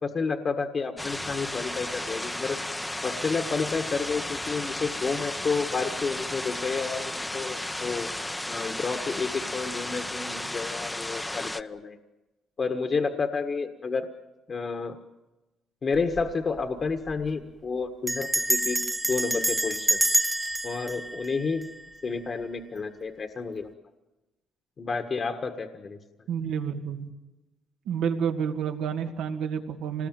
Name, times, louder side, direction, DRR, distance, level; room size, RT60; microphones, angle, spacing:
voice 1, 0.0-2.6 3.0-8.1 8.5-12.0 12.6-14.1 14.5-15.0 15.8-20.0 20.6-21.7 22.0-23.7 24.8-26.0, left 4 dB, 45° left, 6 dB, 1.5 m, -30 dB
sound 1, 1.0-11.6, left 1 dB, 10° left, 0.8 m, -34 dB
Bell, 15.9-16.3 16.6-16.7 16.9-17.3 18.1-22.2, right 1 dB, 10° right, 1.1 m, -28 dB
voice 2, 26.3-27.1 27.9-30.1, right 7 dB, 90° right, 4 dB, 2.1 m, -29 dB
26.0 x 20.0 x 9.1 m, 1.1 s
cardioid pair, 90°, 0 cm